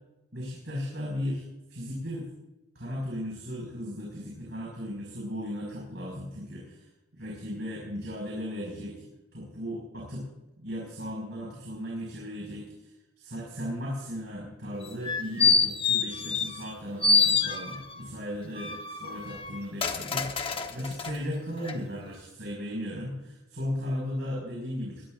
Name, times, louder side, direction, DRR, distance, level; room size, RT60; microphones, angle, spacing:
voice 1, 0.3-1.4 1.7-2.3 2.8-6.8 7.1-10.3 10.6-12.7 13.2-25.0, equal, 65° right, -3 dB, 5.5 m, -36 dB
sound 1, 14.8-16.7 17.0-18.0 18.5-21.2 21.6-21.7, left 5 dB, 30° left, 1.1 m, -26 dB
21.5 x 18.5 x 2.5 m, 0.98 s
head